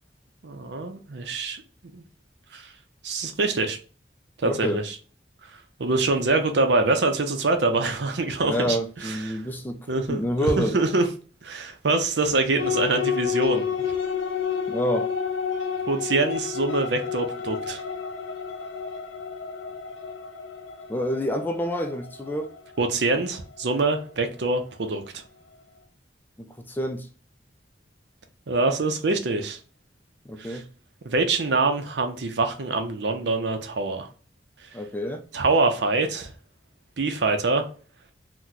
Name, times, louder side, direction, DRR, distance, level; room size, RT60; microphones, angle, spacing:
voice 1, 0.4-1.6 1.9-2.0 2.5-2.7 3.0-3.8 4.4-4.9 5.8-9.4 9.9-11.1 11.4-13.6 15.9-17.8 22.8-25.2 28.5-29.6 30.4-30.6 31.0-34.1 35.3-36.3 37.0-37.7, right 3 dB, 65° right, 0.6 m, -25 dB
voice 2, 4.4-4.8 8.4-9.8 10.1-10.8 14.7-15.1 20.9-22.5 26.4-27.1 30.3-30.6 34.7-35.2, equal, 10° left, 0.3 m, -28 dB
sound 1, 12.6-24.5, left 6 dB, 85° left, 0.5 m, -30 dB
2.9 x 2.2 x 3.8 m
head